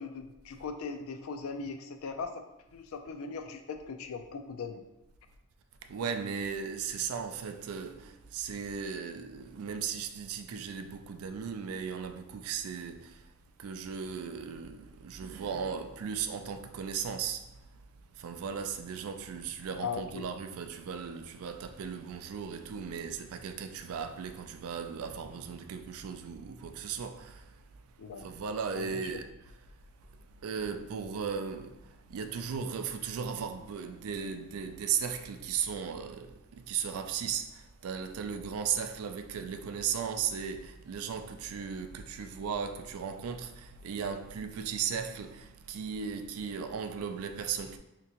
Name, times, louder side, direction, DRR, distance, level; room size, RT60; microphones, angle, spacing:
voice 1, 0.0-2.3 2.7-4.8 19.8-20.3 28.0-28.3 28.7-29.2, left 5 dB, 75° left, 0.4 m, -39 dB
voice 2, 5.9-13.2 13.6-17.5 18.2-27.5 28.2-29.2 30.4-31.8 32.1-47.8, right 7 dB, 80° right, 0.3 m, -36 dB
3.4 x 2.9 x 2.8 m
head